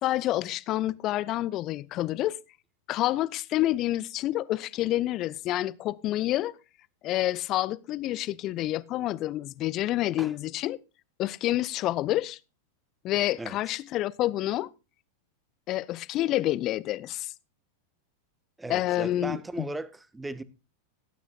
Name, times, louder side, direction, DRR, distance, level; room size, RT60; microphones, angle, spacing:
voice 1, 0.0-2.4 2.9-6.5 7.0-10.8 11.2-12.4 13.0-14.7 15.7-17.3 18.7-19.7, left 15 dB, 35° left, 0.4 m, -28 dB
voice 2, 18.6-20.4, right 2 dB, 10° right, 0.7 m, -37 dB
18.0 x 9.2 x 2.4 m
figure-of-eight pair, 90°, 0 cm